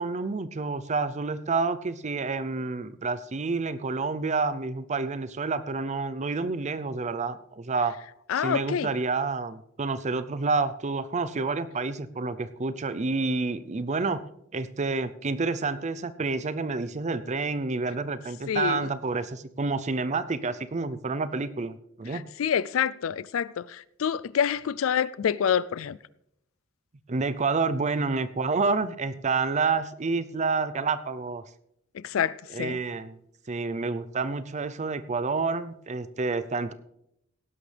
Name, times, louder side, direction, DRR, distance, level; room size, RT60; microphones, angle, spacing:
voice 1, 0.0-8.0 8.3-14.2 14.5-22.2 27.1-31.4 32.5-33.2 33.5-36.7, right 4 dB, 35° right, 0.6 m, -29 dB
voice 2, 8.3-8.9 18.5-18.9 22.1-26.0 31.9-32.8, left 8 dB, 80° left, 0.4 m, -27 dB
17.5 x 11.0 x 3.4 m
head